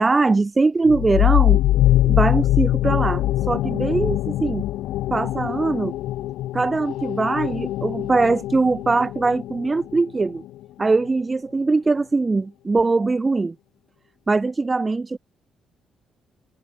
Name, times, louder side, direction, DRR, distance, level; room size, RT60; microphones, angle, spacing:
voice 1, 0.0-1.6 2.1-4.6 5.1-5.9 6.5-10.4 10.8-13.5 14.3-15.2, right 3 dB, 25° right, 4.0 m, -21 dB
sound 1, 0.9-10.2, left 14 dB, 90° left, 1.1 m, -22 dB
cardioid pair, 90°, 0 cm